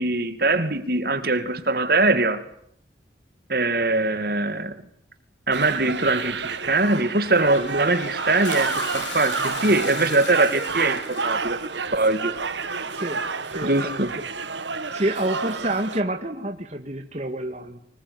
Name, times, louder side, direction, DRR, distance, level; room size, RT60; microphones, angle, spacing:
voice 1, 0.0-2.4 3.5-4.8 5.5-12.3 13.6-14.2, right 2 dB, 50° right, 2.4 m, -22 dB
sound 1, 5.5-16.0, right 4 dB, 75° right, 1.8 m, -30 dB
Toilet flush, 7.2-11.5, left 5 dB, 85° left, 5.3 m, -38 dB
voice 2, 13.5-14.0 14.7-17.8, right 1 dB, 35° right, 2.0 m, -28 dB
25.0 x 20.5 x 9.7 m
head